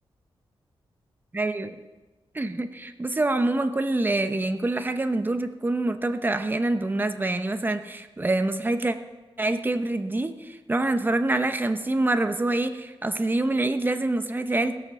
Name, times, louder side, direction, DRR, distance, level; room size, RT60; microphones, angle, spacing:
voice 1, 1.3-1.8 2.3-9.0 9.4-14.7, right 2 dB, 20° right, 9 dB, 0.8 m, -26 dB
16.5 x 6.2 x 6.9 m, 1.2 s
wide cardioid pair, 100°, 10 cm